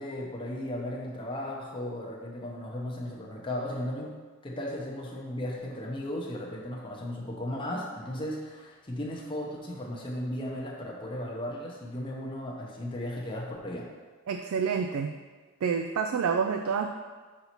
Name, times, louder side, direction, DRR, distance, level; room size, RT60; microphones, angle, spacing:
voice 1, 0.0-4.1 4.4-13.9, left 1 dB, 20° left, -3 dB, 0.7 m, -36 dB
voice 2, 14.3-15.1 15.6-16.9, right 6 dB, 70° right, 5 dB, 0.3 m, -28 dB
5.5 x 4.1 x 4.4 m, 1.4 s
head